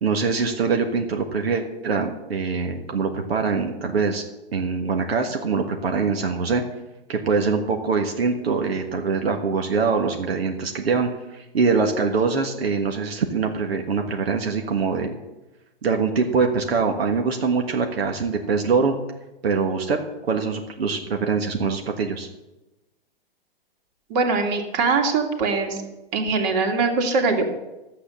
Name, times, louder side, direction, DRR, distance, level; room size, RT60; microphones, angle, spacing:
voice 1, 0.0-4.2 4.5-6.6 7.1-15.2 15.8-19.0 19.4-20.0 20.2-22.3, right 5 dB, 80° right, 3 dB, 1.5 m, -23 dB
voice 2, 24.1-25.8 26.1-27.6, right 4 dB, 45° right, 4 dB, 2.4 m, -22 dB
11.5 x 8.3 x 6.8 m, 1.0 s
hypercardioid pair, 130°, 30 cm